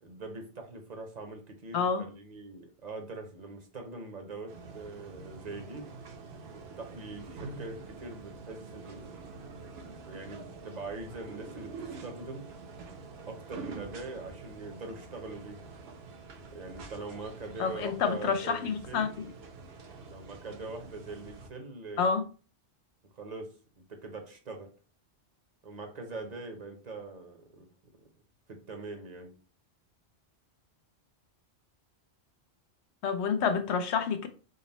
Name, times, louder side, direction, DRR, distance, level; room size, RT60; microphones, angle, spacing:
voice 1, 0.0-5.9 6.5-9.1 9.9-12.5 13.3-15.6 16.5-19.1 20.1-22.2 23.1-23.5 23.9-24.7 25.6-27.7 28.5-29.3, right 3 dB, 45° right, 0.7 m, -42 dB
voice 2, 1.7-2.1 17.6-19.1 22.0-22.3 33.0-34.3, left 6 dB, 80° left, 0.9 m, -28 dB
sound 1, 4.5-21.5, right 4 dB, 70° right, 0.9 m, -46 dB
3.8 x 2.0 x 3.9 m
omnidirectional pair, 1.1 m